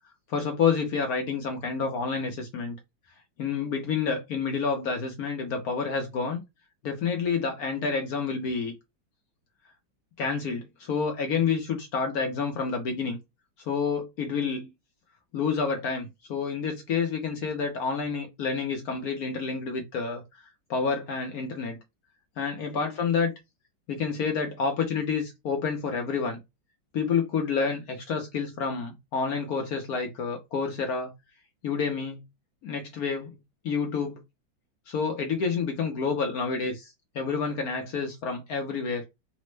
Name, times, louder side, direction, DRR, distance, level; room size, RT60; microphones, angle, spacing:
voice 1, 0.3-2.7 3.4-6.4 6.8-8.7 10.2-13.2 13.6-14.7 15.3-21.8 22.4-23.3 23.9-26.4 26.9-31.1 31.6-32.2 32.6-33.3 33.6-34.2 34.9-39.0, left 5 dB, 70° left, 0.9 m, -29 dB
3.4 x 2.0 x 3.1 m
omnidirectional pair, 2.1 m